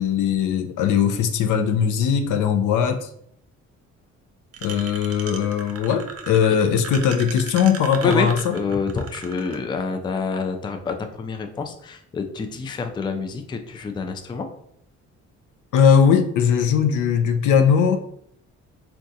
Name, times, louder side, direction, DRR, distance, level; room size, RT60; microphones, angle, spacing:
voice 1, 0.0-3.1 4.6-8.5 15.7-18.0, left 7 dB, 80° left, 6 dB, 0.5 m, -19 dB
sound 1, 4.5-9.6, right 6 dB, 55° right, 0.5 m, -36 dB
voice 2, 8.0-14.5, left 4 dB, 15° left, 6 dB, 0.3 m, -27 dB
3.6 x 2.3 x 2.6 m, 0.70 s
cardioid pair, 90°, 30 cm